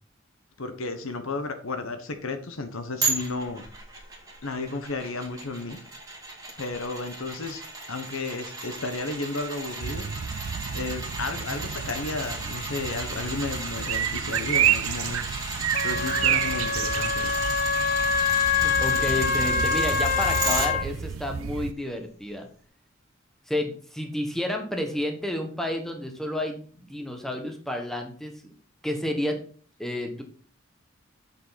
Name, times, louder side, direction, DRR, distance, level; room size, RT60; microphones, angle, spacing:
voice 1, 0.6-3.6 4.4-5.8 6.6-7.6 7.9-10.0 10.7-15.2 15.8-17.4, left 3 dB, 85° left, 8 dB, 1.1 m, -33 dB
sound 1, 3.0-20.7 21.1-21.2, right 3 dB, 15° right, 1.9 m, -35 dB
sound 2, 9.8-21.7, right 9 dB, 90° right, 0.4 m, -30 dB
Wind instrument woodwind instrument, 15.7-20.8, left 6 dB, 45° left, 0.5 m, -25 dB
voice 2, 18.5-22.5 23.5-28.5 28.8-29.4 29.8-30.2, left 1 dB, ahead, 3 dB, 1.2 m, -30 dB
7.5 x 6.6 x 4.1 m, 0.43 s
head